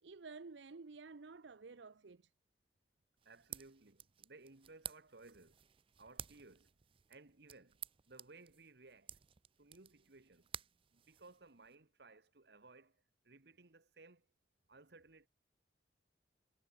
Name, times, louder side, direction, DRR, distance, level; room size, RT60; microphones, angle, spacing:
voice 1, 0.0-2.3, right 4 dB, 85° right, 0.7 m, -52 dB
sound 1, 3.2-11.7, right 10 dB, 30° right, 0.5 m, -54 dB
voice 2, 3.2-5.7 6.0-6.7 7.1-7.8 8.1-9.1 9.6-10.5 10.9-13.0 13.2-14.2 14.7-15.3, right 3 dB, 65° right, 1.5 m, -60 dB
head